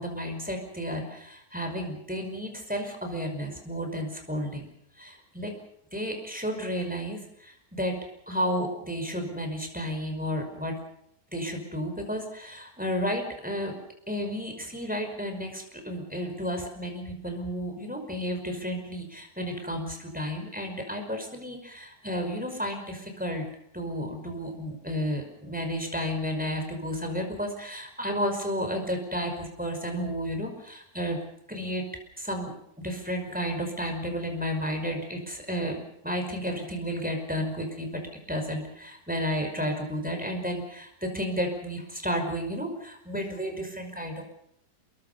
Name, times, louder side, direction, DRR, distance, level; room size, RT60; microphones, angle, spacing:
voice 1, 0.0-4.7 5.0-5.6 5.9-8.0 8.3-10.8 11.3-13.8 14.1-23.5 23.7-31.2 31.5-31.9 32.2-38.0 38.3-44.2, equal, 5° right, 4 dB, 5.3 m, -32 dB
28.0 x 22.5 x 5.5 m, 0.73 s
omnidirectional pair, 2.1 m